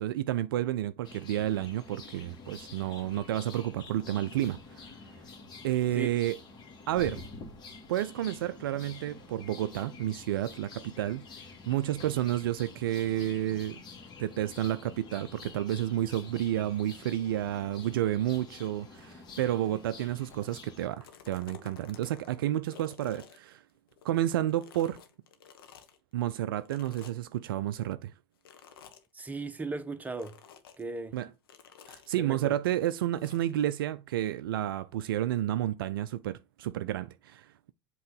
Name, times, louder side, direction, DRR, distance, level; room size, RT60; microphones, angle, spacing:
voice 1, 0.0-4.9 5.6-6.4 6.9-7.2 7.9-11.3 11.7-13.8 14.2-23.6 24.0-25.0 26.1-28.1 31.1-31.3 31.9-37.7, right 13 dB, 65° right, 0.4 m, -31 dB
sound 1, 1.0-20.9, left 4 dB, 35° left, 1.9 m, -48 dB
sound 2, 20.3-20.6 20.9-24.2 24.5-26.0 26.6-27.4 28.4-29.1 30.1-30.8 31.5-32.1 33.2-33.5, left 8 dB, 65° left, 1.0 m, -52 dB
voice 2, 29.1-30.4 30.8-31.2 32.2-32.6, right 3 dB, 10° right, 0.9 m, -37 dB
7.8 x 3.0 x 5.3 m
figure-of-eight pair, 75°, 13 cm